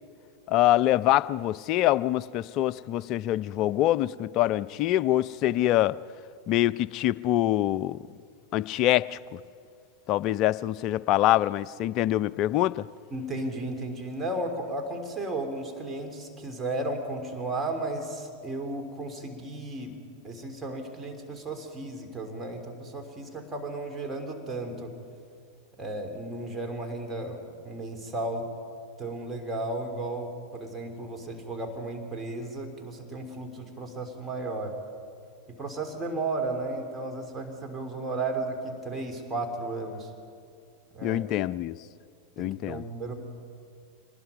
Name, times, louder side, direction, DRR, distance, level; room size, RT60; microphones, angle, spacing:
voice 1, 0.5-6.0 6.5-8.0 8.5-9.4 10.1-12.9 41.0-41.7 42.4-42.8, left 14 dB, 40° left, 0.4 m, -25 dB
voice 2, 13.1-19.9 20.2-24.9 25.8-28.4 29.0-34.7 35.6-40.1 40.9-41.2 42.4-43.1, right 2 dB, 15° right, 3.4 m, -34 dB
26.0 x 20.0 x 5.4 m
figure-of-eight pair, 90°, 0 cm